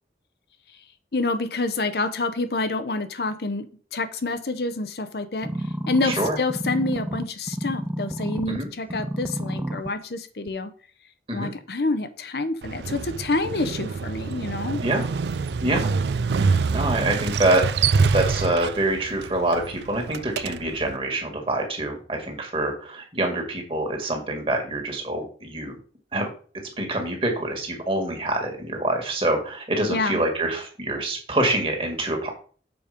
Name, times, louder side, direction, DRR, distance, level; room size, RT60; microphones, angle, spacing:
voice 1, 1.1-5.5 5.9-10.7 11.3-14.8 29.9-30.2, left 3 dB, 65° left, 9 dB, 0.8 m, -27 dB
sound 1, 5.4-8.6 8.9-9.9 10.5-10.6, right 1 dB, 10° right, 0.4 m, -30 dB
voice 2, 6.0-6.4 8.5-8.7 11.3-11.5 14.8-15.1 15.6-15.9 16.3-17.7 18.1-25.8 26.1-26.3 26.8-32.3, right 1 dB, 30° right, 2 dB, 2.1 m, -25 dB
Motorcycle, 12.6-21.0, right 5 dB, 75° right, 0.4 m, -26 dB
7.0 x 5.2 x 5.1 m, 0.42 s
head